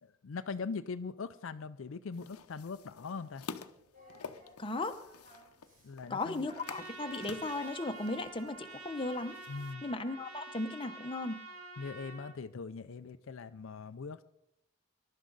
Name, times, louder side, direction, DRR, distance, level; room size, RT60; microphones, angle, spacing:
voice 1, 0.0-3.4 5.8-6.5 9.5-9.8 11.8-14.2, left 4 dB, 65° left, 10 dB, 0.4 m, -41 dB
sound 1, 2.1-9.7, left 5 dB, 85° left, 0.8 m, -50 dB
Singing, 3.9-9.0, equal, 40° right, 3.6 m, -61 dB
voice 2, 4.6-5.0 6.1-9.4 9.8-11.4, left 2 dB, 25° left, 7 dB, 0.8 m, -36 dB
Trumpet, 6.6-12.3, right 2 dB, 75° right, 2.0 m, -48 dB
21.5 x 11.5 x 4.0 m, 0.82 s
head